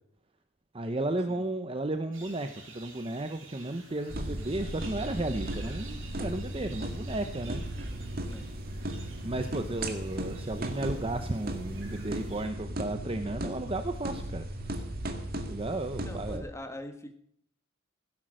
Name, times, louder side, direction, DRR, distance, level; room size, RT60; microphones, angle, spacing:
voice 1, 0.7-7.6 9.2-14.9 15.4-16.4, right 2 dB, 25° right, 7 dB, 0.8 m, -34 dB
sound 1, 2.1-12.5, right 4 dB, 60° right, 6.3 m, -51 dB
sound 2, 4.1-16.4, right 1 dB, 45° right, 2.0 m, -36 dB
voice 2, 16.0-17.1, left 1 dB, 15° left, 6 dB, 1.6 m, -43 dB
17.0 x 10.5 x 6.4 m, 0.69 s
head